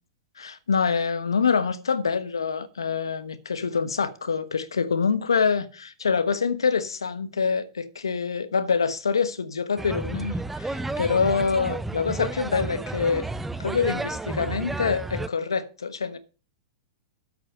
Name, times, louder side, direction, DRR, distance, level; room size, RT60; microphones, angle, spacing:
voice 1, 0.4-13.3 13.6-16.2, left 5 dB, 85° left, 1.2 m, -25 dB
sound 1, 9.8-15.3, right 2 dB, 5° right, 0.6 m, -32 dB
8.2 x 7.5 x 6.6 m
hypercardioid pair, 105°, 2 cm